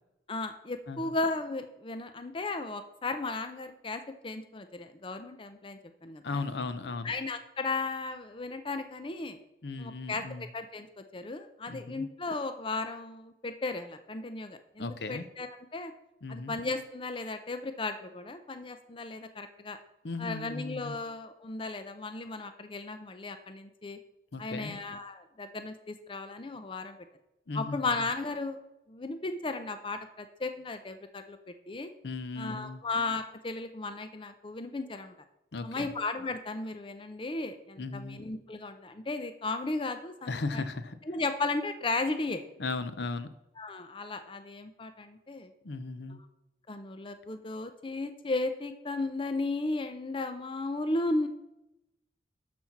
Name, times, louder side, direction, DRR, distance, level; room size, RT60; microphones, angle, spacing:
voice 1, 0.3-6.4 7.0-9.4 9.8-15.9 16.3-19.8 20.2-24.0 24.4-27.0 27.5-28.6 28.9-31.9 32.4-35.1 35.6-40.6 41.1-42.4 43.6-45.5 46.1-46.2 46.7-51.3, left 3 dB, 30° left, 8 dB, 0.5 m, -35 dB
voice 2, 6.2-7.1 9.6-10.5 11.7-12.1 14.8-15.3 16.2-16.5 20.0-21.0 24.3-24.8 27.5-27.8 32.0-32.8 35.5-35.9 37.8-38.2 40.3-41.0 42.6-43.3 45.6-46.2, left 3 dB, 65° left, 12 dB, 0.7 m, -36 dB
12.0 x 4.3 x 5.9 m, 0.90 s
head